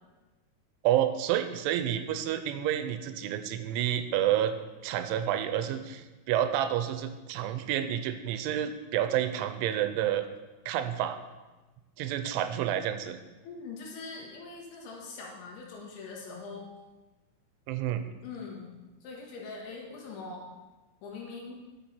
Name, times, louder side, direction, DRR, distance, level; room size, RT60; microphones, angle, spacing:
voice 1, 0.8-4.5 4.8-10.3 10.7-11.2 12.0-13.2 17.7-18.0, right 11 dB, 90° right, 9 dB, 3.0 m, -29 dB
voice 2, 13.4-16.7 18.2-20.5 21.0-21.6, left 4 dB, 75° left, -2 dB, 4.0 m, -42 dB
11.5 x 6.9 x 4.4 m, 1.1 s
omnidirectional pair, 5.4 m